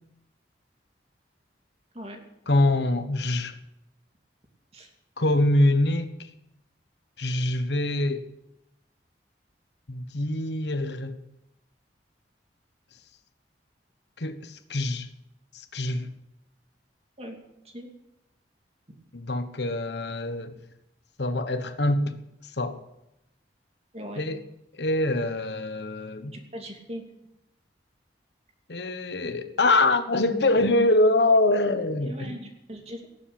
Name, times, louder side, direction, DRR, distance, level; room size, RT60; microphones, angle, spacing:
voice 1, 2.5-3.6 5.2-6.1 7.2-8.3 9.9-11.2 14.2-15.1 15.5-16.1 19.1-20.6 21.2-22.2 22.5-22.8 24.2-24.4 24.7-26.4 28.7-32.4, left 2 dB, 75° left, 1.2 m, -24 dB
voice 2, 23.9-24.3 26.3-27.0 32.0-33.1, equal, 35° right, 2.7 m, -39 dB
17.5 x 7.6 x 8.7 m
head